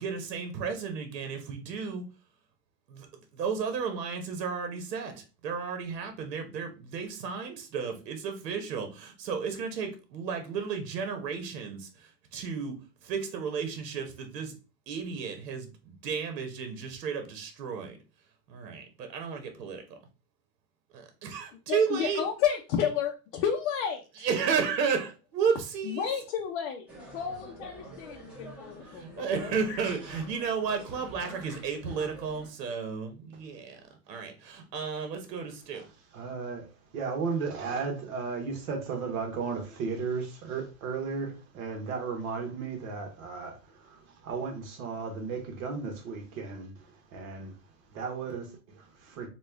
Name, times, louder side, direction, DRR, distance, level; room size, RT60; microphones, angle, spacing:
voice 1, 0.0-2.0 2.9-3.1 3.3-12.7 13.0-14.5 14.9-18.0 18.5-20.0 20.9-22.2 24.2-26.1 28.9-33.8 34.1-35.9, right 6 dB, 75° right, 1.2 m, -33 dB
voice 2, 21.7-24.1 25.8-29.8, left 8 dB, 45° left, 0.6 m, -31 dB
sound 1, 26.9-32.5, right 1 dB, 5° right, 0.8 m, -47 dB
voice 3, 36.1-36.7 36.9-47.5 47.9-49.3, right 5 dB, 60° right, 1.3 m, -35 dB
4.2 x 2.4 x 3.4 m
supercardioid pair, 145°, 49 cm